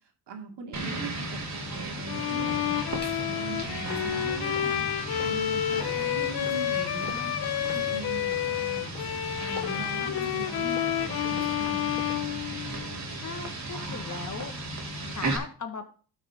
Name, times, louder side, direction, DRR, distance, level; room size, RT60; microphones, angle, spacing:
voice 1, 0.3-2.8 3.2-4.9 5.2-7.3 7.7-8.9 9.4-10.8 11.2-12.4, right 3 dB, 65° right, 3 dB, 2.7 m, -40 dB
sound 1, 0.7-15.4, right 2 dB, 40° right, 3.1 m, -36 dB
sound 2, 1.5-2.6 2.9-12.5, left 3 dB, 25° left, 4.1 m, -50 dB
Bowed string instrument, 2.1-13.1, left 11 dB, 55° left, 0.9 m, -30 dB
voice 2, 13.2-14.5 15.2-15.9, left 5 dB, 40° left, 7 dB, 1.7 m, -38 dB
12.5 x 6.3 x 3.7 m, 0.40 s
cardioid pair, 80°, 44 cm